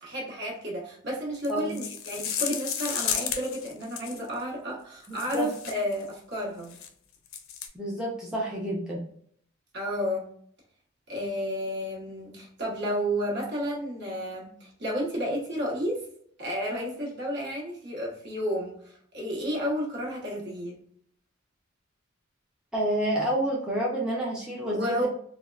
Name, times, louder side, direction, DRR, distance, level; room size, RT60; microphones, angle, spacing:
voice 1, 0.0-6.8 9.7-10.3 11.1-16.0 16.4-20.8 24.7-25.1, equal, 55° right, -3 dB, 1.0 m, -31 dB
sound 1, 1.3-4.3 5.0-6.0 6.6-6.9 7.3-7.7, left 8 dB, 75° left, 0.4 m, -33 dB
voice 2, 7.7-9.0 22.7-25.1, right 1 dB, 5° right, -5 dB, 0.5 m, -29 dB
3.4 x 2.1 x 2.2 m, 0.63 s
head